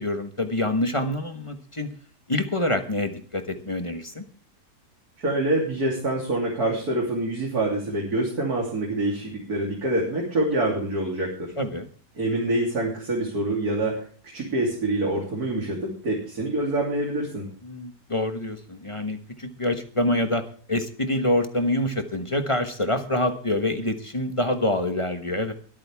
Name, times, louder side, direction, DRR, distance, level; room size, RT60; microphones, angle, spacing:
voice 1, 0.0-1.9 2.3-4.2 11.6-11.9 17.6-20.4 20.7-25.5, left 1 dB, 20° left, 7 dB, 1.1 m, -26 dB
voice 2, 5.2-11.5 12.2-14.0 14.3-17.5, right 2 dB, 60° right, -2 dB, 3.7 m, -26 dB
22.5 x 8.9 x 3.5 m, 0.43 s
omnidirectional pair, 1.8 m